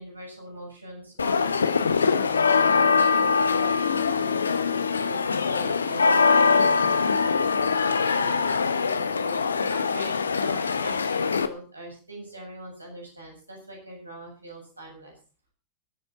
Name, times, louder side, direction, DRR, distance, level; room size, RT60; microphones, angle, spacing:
voice 1, 0.0-4.6 4.9-7.7 8.0-15.1, right 1 dB, 80° right, -1 dB, 7.6 m, -42 dB
sound 1, 1.2-11.5, left 5 dB, 75° left, 1.0 m, -23 dB
23.0 x 8.8 x 4.1 m, 0.36 s
figure-of-eight pair, 90°, 0 cm